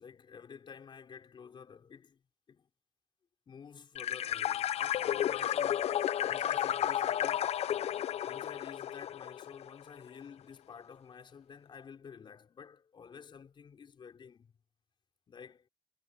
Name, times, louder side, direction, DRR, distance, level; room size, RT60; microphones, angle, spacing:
voice 1, 0.0-2.2 2.5-2.7 3.5-5.9 6.2-7.5 8.2-14.5 15.3-15.7, left 6 dB, 40° left, 4.2 m, -51 dB
sound 1, 4.0-9.7, left 11 dB, 60° left, 0.5 m, -32 dB
wide cardioid pair, 170°, 12 cm